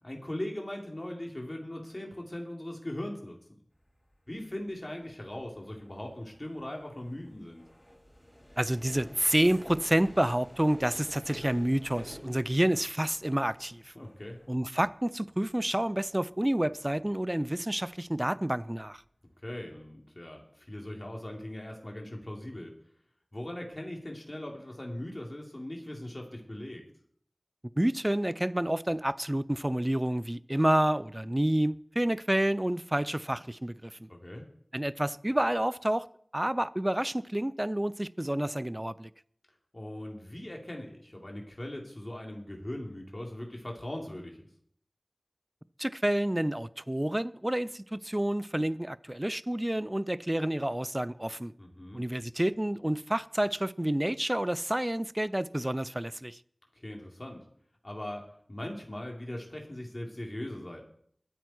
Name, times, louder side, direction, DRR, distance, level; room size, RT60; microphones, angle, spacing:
voice 1, 0.0-3.4 4.3-7.6 13.9-14.4 19.4-22.7 23.3-26.8 34.1-34.4 39.7-44.5 51.6-52.0 56.8-57.4 57.8-60.9, left 1 dB, 35° left, 3.6 m, -40 dB
sound 1, 3.7-18.4 18.7-19.1 19.4-19.8, equal, 5° left, 6.1 m, -52 dB
voice 2, 8.6-13.8 14.5-19.0 27.8-34.1 34.7-36.1 36.3-39.1 45.8-51.5 51.9-56.4, right 1 dB, 20° right, 0.5 m, -29 dB
21.5 x 9.2 x 4.7 m
wide cardioid pair, 50°, 0 cm